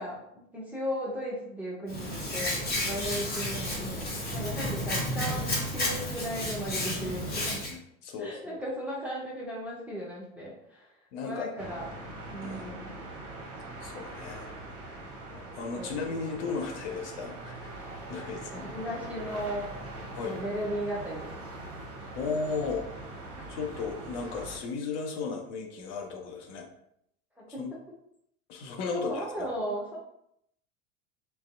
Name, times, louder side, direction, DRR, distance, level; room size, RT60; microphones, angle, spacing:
voice 1, 0.0-7.6 8.2-10.9 11.2-11.9 12.3-13.0 15.7-16.2 18.5-19.7 20.2-21.4 27.4-27.6 28.9-30.0, equal, 5° right, -6 dB, 0.5 m, -36 dB
Hands, 1.9-7.7, left 1 dB, 25° left, 0.9 m, -32 dB
voice 2, 7.4-8.6 11.1-11.5 12.4-12.9 13.8-14.5 15.5-17.7 18.1-18.7 20.1-20.4 22.2-22.8 23.5-26.7 27.6-27.7 28.5-29.5, left 4 dB, 60° left, 2 dB, 0.6 m, -35 dB
sound 1, 11.6-24.6, right 2 dB, 35° right, 0.8 m, -42 dB
2.5 x 2.0 x 2.4 m, 0.74 s
hypercardioid pair, 85°, 40 cm